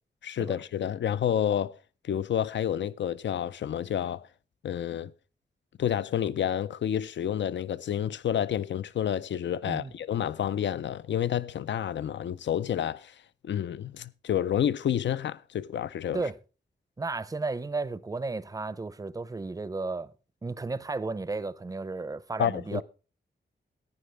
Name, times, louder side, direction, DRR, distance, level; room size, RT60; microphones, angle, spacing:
voice 1, 0.2-1.8 2.0-4.3 4.6-5.1 5.8-13.2 13.4-16.2 22.4-22.8, left 10 dB, 80° left, 0.5 m, -29 dB
voice 2, 17.0-20.1 20.4-22.8, right 3 dB, 20° right, 0.5 m, -33 dB
14.5 x 9.7 x 3.3 m
wide cardioid pair, 150°, 18 cm